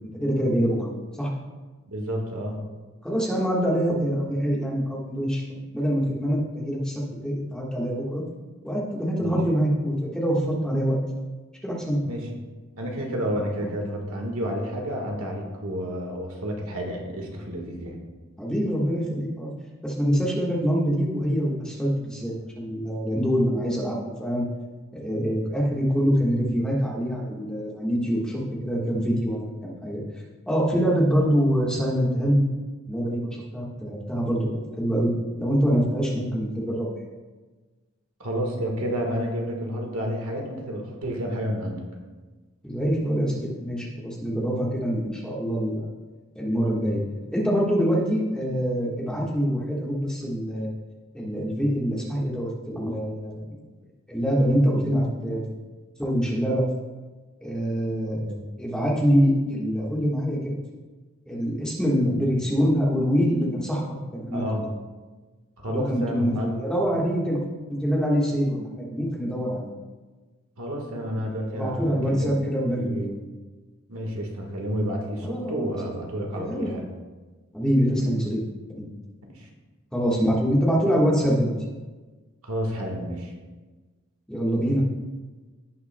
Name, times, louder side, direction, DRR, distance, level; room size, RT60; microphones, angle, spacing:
voice 1, 0.2-0.9 1.2-1.3 3.0-5.4 5.7-8.2 8.6-11.0 11.6-12.0 13.6-13.7 18.4-19.5 19.8-24.4 24.9-30.0 30.5-32.5 32.9-34.5 34.8-35.1 35.4-36.9 42.6-45.9 46.3-47.0 47.3-50.7 51.1-53.5 54.1-55.5 56.0-56.6 57.4-58.2 58.6-60.6 61.3-63.8 64.1-64.7 65.7-67.4 67.8-69.7 71.5-73.0 75.2-75.9 76.3-76.8 77.5-78.4 78.7-78.9 79.9-81.5 84.3-84.8, equal, 5° left, -5 dB, 1.4 m, -25 dB
voice 2, 1.9-2.6 9.2-9.3 12.0-12.3 12.8-18.0 36.2-36.3 38.2-41.8 58.3-58.4 62.0-62.2 64.3-64.7 65.6-66.5 70.6-72.4 72.7-73.2 73.9-76.8 78.0-78.1 79.3-79.5 82.4-83.3, equal, 85° right, 1 dB, 1.5 m, -30 dB
17.0 x 5.9 x 2.2 m, 1.3 s
head